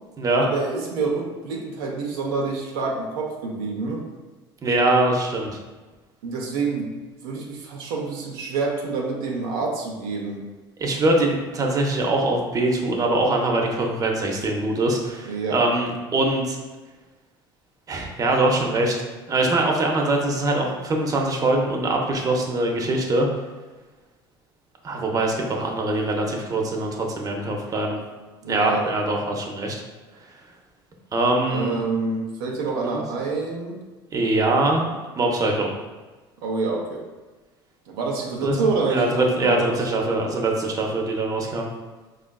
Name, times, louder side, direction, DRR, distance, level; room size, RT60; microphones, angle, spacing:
voice 1, 0.4-4.0 6.2-6.9 7.2-10.4 15.2-15.6 28.4-29.0 31.5-33.8 36.4-37.0 37.9-39.7, right 4 dB, 80° right, -1 dB, 0.6 m, -27 dB
voice 2, 4.6-5.6 10.8-16.6 17.9-23.3 24.8-28.0 28.5-29.8 31.1-31.8 32.8-33.0 34.1-35.7 38.4-38.5 38.9-41.7, right 2 dB, 30° right, 0 dB, 0.7 m, -23 dB
4.9 x 2.4 x 2.3 m, 1.2 s
hypercardioid pair, 80°, 12 cm